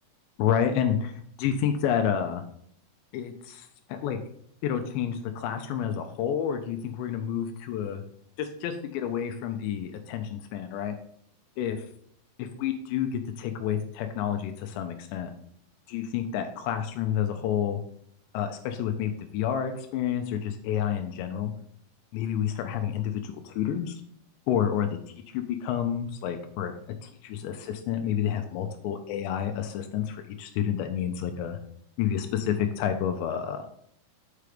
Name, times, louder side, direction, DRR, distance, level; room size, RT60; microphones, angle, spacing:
voice 1, 0.4-1.1 1.4-2.4 3.1-4.2 4.6-8.0 8.4-10.9 11.6-11.8 12.4-15.3 15.9-17.8 18.3-21.5 22.1-24.0 24.5-25.0 25.3-26.7 27.0-31.6 32.0-33.7, left 9 dB, 85° left, 6 dB, 2.9 m, -29 dB
6.8 x 4.9 x 4.9 m, 0.66 s
omnidirectional pair, 5.0 m